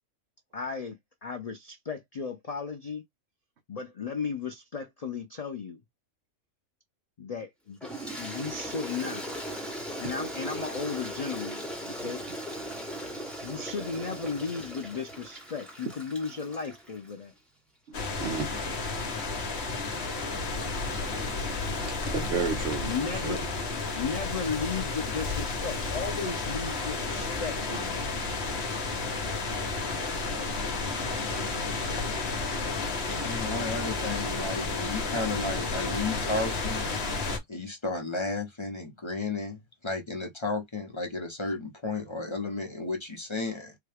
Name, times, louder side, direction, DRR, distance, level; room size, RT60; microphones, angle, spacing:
voice 1, 0.5-3.0 3.7-5.8 7.2-7.8 8.2-9.3 10.0-12.3 13.4-17.3 22.9-23.4 24.0-28.1, left 5 dB, 80° left, 0.3 m, -35 dB
Toilet flush, 7.8-17.2, equal, ahead, 1.0 m, -38 dB
sound 1, 17.9-37.4, left 3 dB, 55° left, 1.1 m, -32 dB
voice 2, 17.9-18.5 20.2-23.4 27.7-27.8, right 5 dB, 60° right, 1.0 m, -35 dB
voice 3, 33.2-36.8 37.5-43.7, left 3 dB, 25° left, 0.8 m, -33 dB
3.9 x 2.3 x 3.4 m
omnidirectional pair, 1.4 m